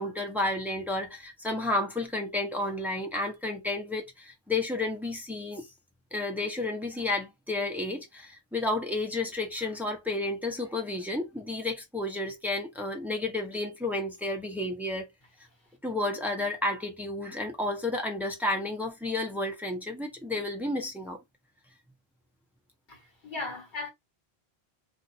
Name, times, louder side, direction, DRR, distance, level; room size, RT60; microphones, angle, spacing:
voice 1, 0.0-5.7 6.1-15.1 15.8-21.2, left 2 dB, ahead, 0.7 m, -31 dB
voice 2, 22.9-23.9, left 3 dB, 50° left, 1.5 m, -37 dB
2.5 x 2.4 x 4.1 m
omnidirectional pair, 1.0 m